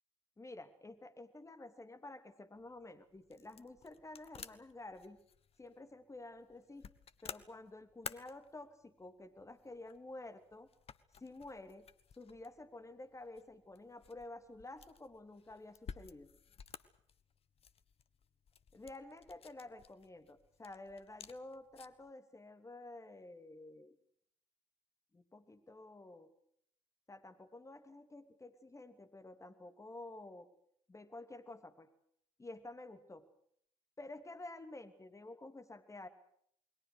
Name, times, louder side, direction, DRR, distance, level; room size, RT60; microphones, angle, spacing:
voice 1, 0.4-5.2 5.6-6.9 7.2-10.7 11.2-11.9 12.2-16.3 18.7-24.0 25.1-26.3 27.1-30.5 30.9-31.9 32.4-33.3 34.0-36.1, left 2 dB, 20° left, 8 dB, 3.0 m, -51 dB
sound 1, 2.5-22.1, left 7 dB, 40° left, 1.2 m, -55 dB
28.5 x 21.5 x 6.5 m, 0.67 s
figure-of-eight pair, 50°, 15 cm